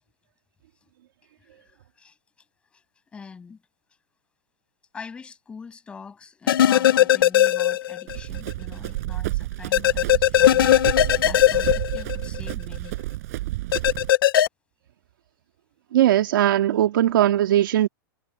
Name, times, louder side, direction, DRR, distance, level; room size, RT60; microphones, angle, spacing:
voice 1, 1.4-2.2 2.7-2.8 3.1-3.6 4.9-10.8 11.2-13.0, left 5 dB, 10° left, 7.3 m, -43 dB
sound 1, 6.5-8.2 8.5-8.6 9.7-12.5 13.7-14.5, left 12 dB, 75° left, 1.0 m, -18 dB
Run, 8.1-14.1, right 18 dB, 45° right, 7.0 m, -30 dB
voice 2, 15.9-17.9, right 12 dB, 65° right, 2.1 m, -19 dB
supercardioid pair, 175°, 12 cm